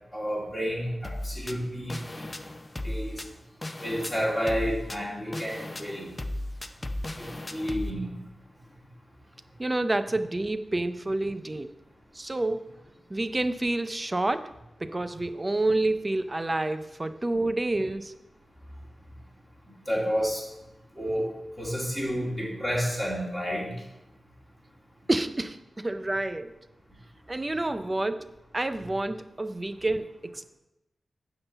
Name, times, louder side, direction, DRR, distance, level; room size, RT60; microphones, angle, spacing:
voice 1, 0.1-2.3 2.8-3.2 3.8-6.1 7.1-8.2 19.9-20.4 21.0-23.8, equal, 5° right, -5 dB, 2.3 m, -30 dB
sound 1, 1.0-7.9, left 1 dB, 25° left, 0.6 m, -36 dB
voice 2, 9.6-11.7 12.1-12.7 13.1-14.5 14.8-18.1 25.1-26.6 27.3-28.3 28.5-30.4, right 2 dB, 25° right, 11 dB, 0.5 m, -28 dB
9.6 x 3.9 x 7.0 m, 0.92 s
wide cardioid pair, 90°, 0 cm